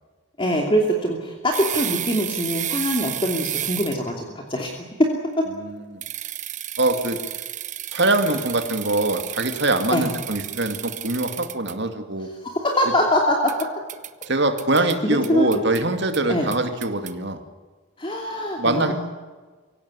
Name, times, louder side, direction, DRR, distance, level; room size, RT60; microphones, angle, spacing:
voice 1, 0.4-5.1 5.4-5.5 9.9-10.1 12.4-13.7 14.8-15.5 16.3-16.5 18.0-18.9, equal, 25° left, 1 dB, 2.8 m, -23 dB
sound 1, 1.5-4.1 6.0-11.7 13.5-14.3 14.6-15.0 15.2-15.8 16.1-16.2 16.5-17.1, right 12 dB, 35° right, 1.0 m, -32 dB
voice 2, 5.6-6.0 6.8-7.2 7.9-12.3 14.3-17.4 18.6-18.9, right 2 dB, 55° right, 6 dB, 2.5 m, -23 dB
24.0 x 17.5 x 9.8 m, 1.4 s
head